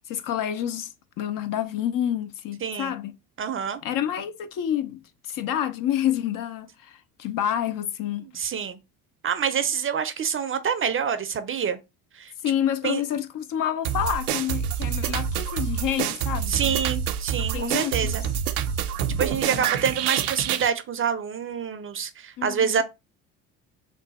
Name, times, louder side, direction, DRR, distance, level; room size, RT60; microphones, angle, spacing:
voice 1, 0.1-0.9 1.2-3.2 3.8-8.3 12.4-16.8 17.5-18.1 19.4-19.7 22.4-22.8, left 10 dB, 50° left, 0.5 m, -28 dB
voice 2, 2.6-2.9 3.4-3.8 8.2-8.8 9.2-11.8 12.1-12.3 12.8-13.0 16.5-18.2 19.2-22.8, right 7 dB, 30° right, 0.5 m, -27 dB
sound 1, 13.8-20.7, right 8 dB, 90° right, 0.6 m, -27 dB
3.1 x 2.2 x 4.0 m
hypercardioid pair, 70°, 43 cm